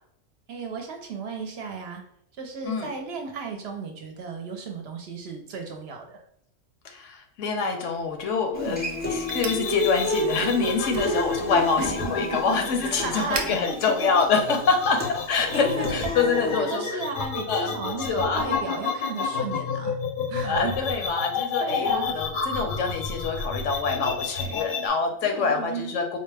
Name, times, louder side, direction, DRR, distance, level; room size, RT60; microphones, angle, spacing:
voice 1, 0.5-2.0 2.3-6.2 8.5-8.8 11.0-11.2 11.8-12.4 12.8-14.3 15.5-16.1 16.4-19.9 20.3-20.7 21.6-22.2 23.9-24.1 25.2-26.0, right 4 dB, 65° right, 3 dB, 0.8 m, -34 dB
voice 2, 6.8-11.8 12.1-17.0 17.5-17.7 18.1-18.5 20.4-26.2, left 4 dB, 80° left, 5 dB, 1.0 m, -26 dB
sound 1, 7.9-15.1, right 5 dB, 85° right, 0.3 m, -42 dB
Human voice / Acoustic guitar, 8.5-16.6, left 1 dB, 10° left, 0.5 m, -31 dB
sound 2, 9.3-24.9, left 6 dB, 60° left, 0.5 m, -30 dB
4.1 x 2.1 x 3.3 m, 0.70 s
omnidirectional pair, 1.3 m